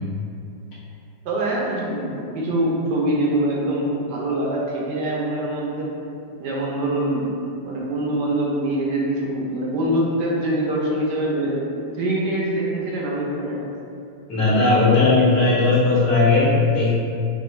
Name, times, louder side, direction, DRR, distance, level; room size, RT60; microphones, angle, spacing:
voice 1, 1.2-5.9 6.4-7.3 7.6-11.6 12.0-13.6, right 1 dB, 85° right, -4 dB, 1.4 m, -24 dB
voice 2, 14.3-16.9, left 3 dB, 80° left, -7 dB, 1.7 m, -17 dB
4.1 x 2.2 x 4.2 m, 2.5 s
omnidirectional pair, 1.8 m